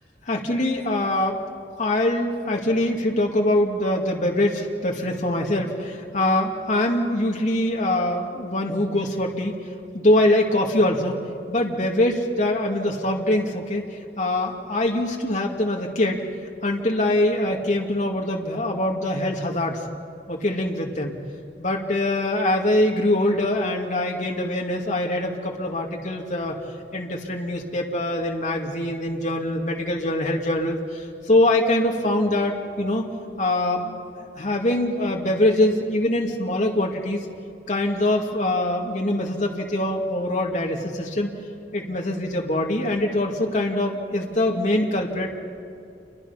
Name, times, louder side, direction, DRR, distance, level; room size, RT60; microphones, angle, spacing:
voice 1, 0.3-1.4 1.8-9.6 9.9-11.2 11.5-13.8 14.2-16.2 16.6-19.9 20.3-21.2 21.6-26.6 26.9-33.0 33.4-37.2 37.7-41.3 41.7-45.3, left 1 dB, 45° left, 0 dB, 2.1 m, -23 dB
29.0 x 23.5 x 5.7 m, 2.6 s
head